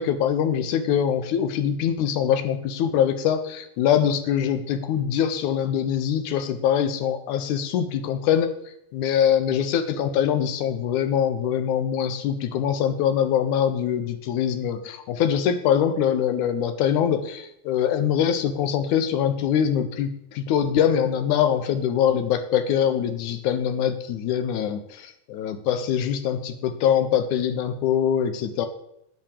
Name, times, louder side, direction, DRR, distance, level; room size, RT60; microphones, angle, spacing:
voice 1, 0.0-8.5 8.9-28.7, left 9 dB, 80° left, 9 dB, 2.4 m, -23 dB
9.2 x 9.1 x 6.7 m, 0.77 s
omnidirectional pair, 3.5 m